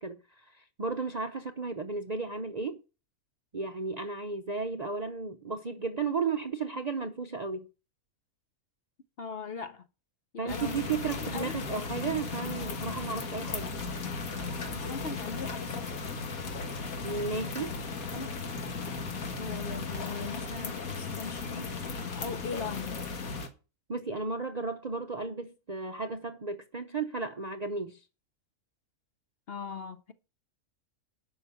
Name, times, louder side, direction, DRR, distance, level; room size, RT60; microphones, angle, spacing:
voice 1, 0.0-2.8 3.5-7.7 10.4-13.7 17.0-17.8 23.9-28.0, right 4 dB, 40° right, 0.6 m, -34 dB
voice 2, 9.2-9.9 10.3-10.8 11.3-12.2 14.7-15.9 18.1-18.4 19.4-21.7 22.2-23.0 29.5-30.1, left 5 dB, 50° left, 0.9 m, -40 dB
sound 1, 10.5-23.5, left 4 dB, 70° left, 1.9 m, -36 dB
11.5 x 5.8 x 6.9 m
omnidirectional pair, 1.5 m